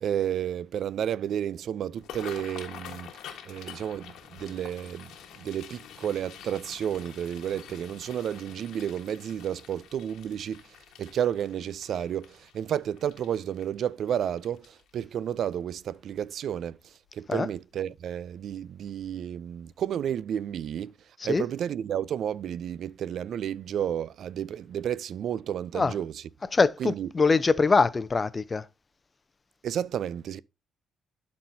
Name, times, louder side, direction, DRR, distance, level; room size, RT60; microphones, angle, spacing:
voice 1, 0.0-3.1 3.5-5.1 5.4-10.6 11.0-20.9 21.2-26.3 26.8-27.1 29.6-30.4, right 9 dB, 65° right, 0.3 m, -31 dB
sound 1, 1.9-15.0 15.5-15.8 16.1-16.5 17.0-17.1 18.3-18.5 18.9-19.0 19.5-19.6, left 9 dB, 85° left, 1.3 m, -47 dB
voice 2, 26.5-28.6, left 4 dB, 30° left, 0.6 m, -23 dB
11.5 x 4.3 x 2.7 m
cardioid pair, 90°, 0 cm